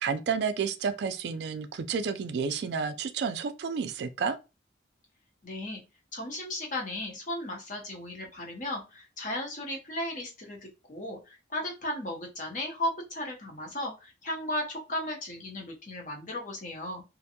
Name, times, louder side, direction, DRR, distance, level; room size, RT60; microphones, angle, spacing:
voice 1, 0.0-4.4, right 6 dB, 65° right, 0.3 m, -31 dB
voice 2, 5.4-5.8 6.1-17.0, left 1 dB, 45° left, 0.8 m, -35 dB
2.5 x 2.2 x 2.7 m
head